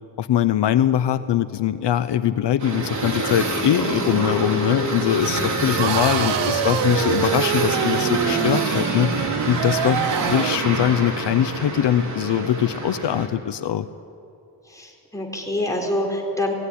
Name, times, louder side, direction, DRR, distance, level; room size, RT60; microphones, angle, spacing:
voice 1, 0.2-9.1 9.5-13.9, left 10 dB, 75° left, 13 dB, 0.7 m, -22 dB
sound 1, 2.6-13.3, right 2 dB, 40° right, 3.4 m, -26 dB
sound 2, 5.8-10.7, right 13 dB, 80° right, 0.5 m, -26 dB
voice 2, 14.7-16.5, left 1 dB, 10° left, 0 dB, 4.2 m, -26 dB
18.0 x 16.0 x 9.9 m, 2.7 s
wide cardioid pair, 100°, 42 cm